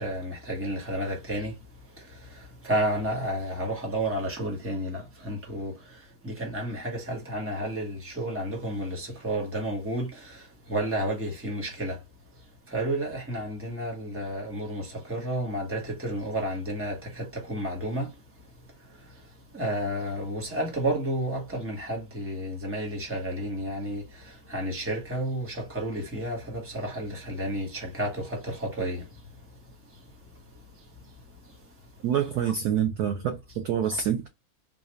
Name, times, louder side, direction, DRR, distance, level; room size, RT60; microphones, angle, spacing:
voice 1, 0.0-1.5 2.6-5.7 6.2-10.4 10.7-12.0 12.7-18.1 19.5-24.0 24.5-29.0 32.3-32.5, right 1 dB, 10° right, 0.8 m, -31 dB
voice 2, 32.0-34.3, right 9 dB, 80° right, 0.8 m, -26 dB
4.0 x 2.4 x 3.0 m
omnidirectional pair, 2.2 m